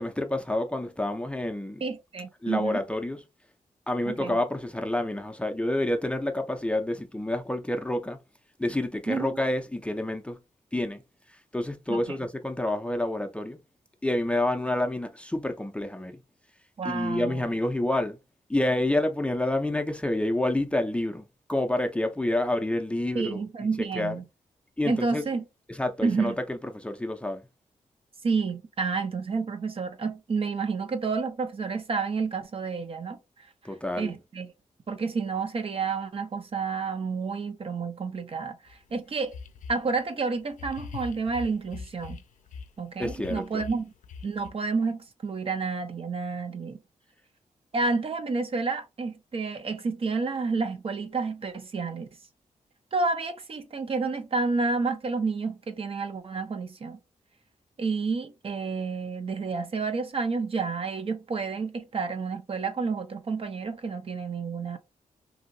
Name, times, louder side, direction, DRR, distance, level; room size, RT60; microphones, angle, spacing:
voice 1, 0.0-1.8 2.4-3.2 3.9-8.2 8.6-10.4 10.7-11.0 11.3-13.6 14.0-16.2 16.8-18.2 18.5-21.2 21.5-23.4 23.9-24.1 24.8-25.2 25.7-27.4 33.6-34.2 43.0-43.6, left 1 dB, 10° left, 0.5 m, -28 dB
voice 2, 1.8-2.8 4.1-4.4 9.1-9.3 11.9-12.0 16.8-17.4 23.1-24.2 24.8-25.4 26.0-26.3 28.2-33.2 34.0-34.5 34.9-39.3 39.7-42.2 42.8-43.8 44.2-46.8 47.7-52.1 52.9-57.0 57.8-64.8, right 4 dB, 45° right, 0.6 m, -30 dB
sound 1, 38.7-38.8 39.3-39.9 40.5-42.7 43.0-44.5, left 5 dB, 80° left, 0.4 m, -41 dB
2.9 x 2.7 x 2.6 m
cardioid pair, 85°, 13 cm